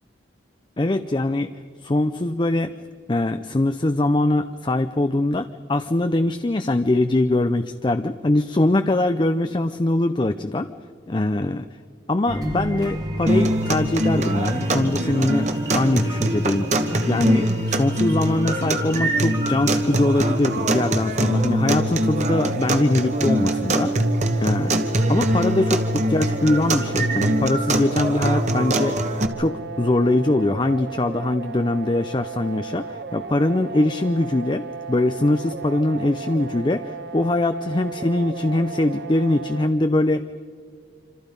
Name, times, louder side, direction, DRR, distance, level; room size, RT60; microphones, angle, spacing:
voice 1, 0.8-1.5 1.8-2.7 3.1-10.7 11.1-11.7 12.1-23.9 24.4-24.7 25.1-29.0 29.4-40.2, left 2 dB, 25° left, 10 dB, 0.5 m, -22 dB
sound 1, 12.3-21.6 22.0-22.1, right 1 dB, 20° right, 1.4 m, -33 dB
sound 2, 13.3-29.3, right 1 dB, 40° right, 1.3 m, -23 dB
sound 3, 21.7-39.7, right 5 dB, 60° right, 1.2 m, -35 dB
26.5 x 26.5 x 5.3 m, 2.1 s
head